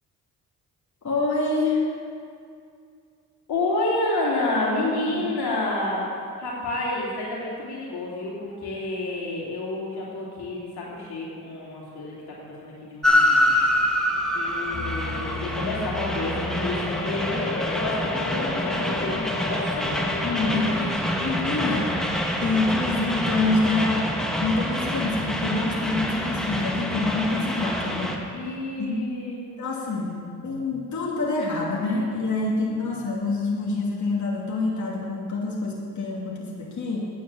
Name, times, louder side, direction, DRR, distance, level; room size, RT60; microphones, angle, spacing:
voice 1, 1.0-1.9 5.1-5.3 20.2-22.0 22.4-28.2 28.8-29.1 29.6-37.1, left 3 dB, 50° left, -4 dB, 2.6 m, -26 dB
voice 2, 3.5-6.1 6.4-13.5 14.3-20.3 20.7-20.9 28.3-29.4, left 2 dB, 80° left, -4 dB, 3.1 m, -29 dB
Train, 13.0-28.2, equal, ahead, 1.8 m, -26 dB
sound 1, 14.7-20.9, left 5 dB, 30° left, 0.8 m, -34 dB
9.3 x 8.8 x 7.3 m, 2.3 s
supercardioid pair, 60°, 38 cm